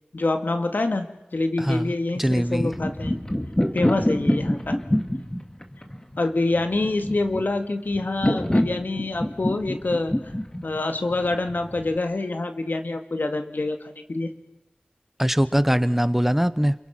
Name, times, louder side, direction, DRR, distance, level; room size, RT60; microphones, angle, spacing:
voice 1, 0.1-1.1 1.3-3.2 3.7-4.8 6.2-10.1 10.6-14.3, left 2 dB, 75° left, 7 dB, 2.1 m, -26 dB
voice 2, 1.6-2.7 15.2-16.7, equal, 10° right, 14 dB, 0.9 m, -22 dB
sound 1, 2.3-12.0, left 1 dB, 20° left, 2.4 m, -26 dB
28.0 x 23.5 x 6.0 m, 0.91 s
wide cardioid pair, 45°, 3 cm